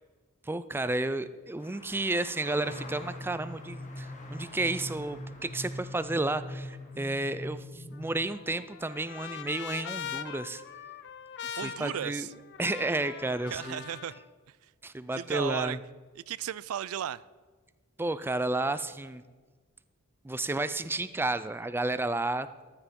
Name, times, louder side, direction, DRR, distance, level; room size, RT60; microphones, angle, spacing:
voice 1, 0.4-10.6 11.5-12.3 12.6-13.8 14.8-15.8 18.0-19.2 20.2-22.5, right 2 dB, 10° right, 13 dB, 0.4 m, -32 dB
sound 1, 1.6-7.3, left 2 dB, 35° left, 1.7 m, -50 dB
sound 2, 2.7-8.3, left 1 dB, 20° left, 0.9 m, -42 dB
Trumpet, 7.9-14.2, left 8 dB, 55° left, 0.6 m, -42 dB
voice 2, 11.6-12.3 13.5-14.1 15.2-15.8 16.2-17.2, right 9 dB, 80° right, 19 dB, 0.4 m, -35 dB
14.0 x 9.8 x 5.3 m, 1.4 s
head